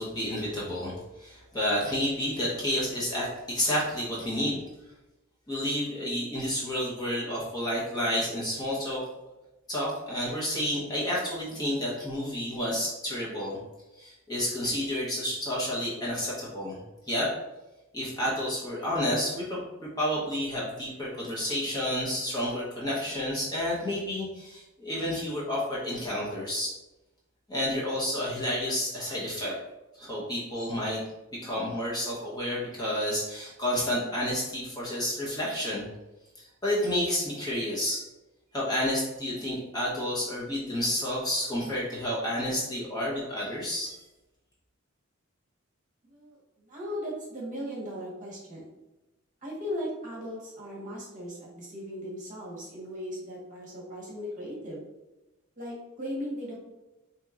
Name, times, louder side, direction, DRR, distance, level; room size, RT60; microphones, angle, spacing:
voice 1, 0.0-4.6 5.5-9.0 9.7-13.6 14.0-16.8 17.1-17.3 17.9-19.6 20.0-26.7 27.5-29.5 30.0-31.0 31.3-35.9 36.4-38.0 38.5-43.9, left 1 dB, 20° left, -6 dB, 0.9 m, -30 dB
voice 2, 46.0-48.7 49.4-54.8 55.6-56.6, equal, 40° right, -5 dB, 1.2 m, -37 dB
4.2 x 2.9 x 2.4 m, 1.0 s
head